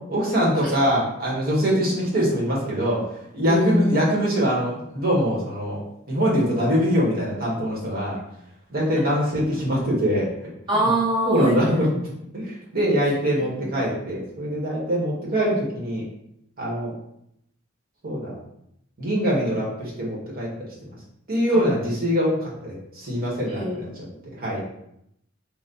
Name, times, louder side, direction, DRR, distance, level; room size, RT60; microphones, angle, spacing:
voice 1, 0.1-5.8 6.1-8.2 8.7-10.5 11.2-12.1 12.3-16.0 16.6-16.9 18.0-18.4 19.0-20.7 21.3-23.9 24.4-24.6, equal, 50° right, -5 dB, 1.4 m, -23 dB
voice 2, 3.5-3.9 10.7-11.9 13.6-13.8 21.5-21.6 23.5-24.3, right 1 dB, 25° right, -6 dB, 1.4 m, -25 dB
4.2 x 2.4 x 3.9 m, 0.77 s
head